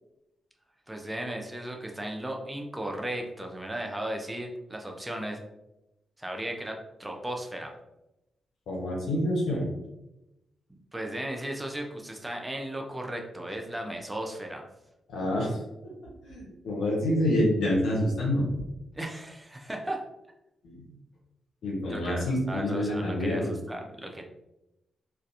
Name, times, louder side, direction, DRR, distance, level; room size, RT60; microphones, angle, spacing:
voice 1, 0.9-5.4 6.2-7.7 10.7-14.7 18.9-20.1 21.9-24.2, right 1 dB, 15° right, 2 dB, 0.5 m, -36 dB
voice 2, 8.7-9.7 15.1-15.6 15.8-15.9 16.2-18.4 20.6-20.9 21.6-23.5, left 1 dB, 85° left, -3 dB, 0.8 m, -27 dB
2.4 x 2.2 x 2.7 m, 0.91 s
cardioid pair, 60°, 0 cm